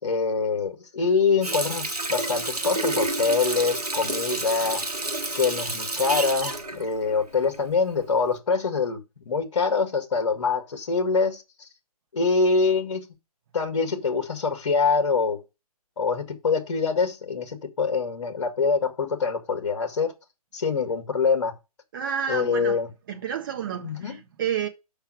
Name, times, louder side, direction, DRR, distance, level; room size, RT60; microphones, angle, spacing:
voice 1, 0.0-4.8 5.3-11.4 12.1-13.1 13.5-15.4 16.0-20.1 20.5-21.5 22.3-22.9 23.8-24.2, left 4 dB, 50° left, 2.0 m, -24 dB
Water tap faucet, 1.4-7.8 8.2-8.4, right 2 dB, 85° right, 1.4 m, -30 dB
voice 2, 21.9-22.8 23.1-24.7, right 8 dB, 35° right, 1.5 m, -30 dB
6.7 x 5.6 x 6.4 m
figure-of-eight pair, 140°, 19 cm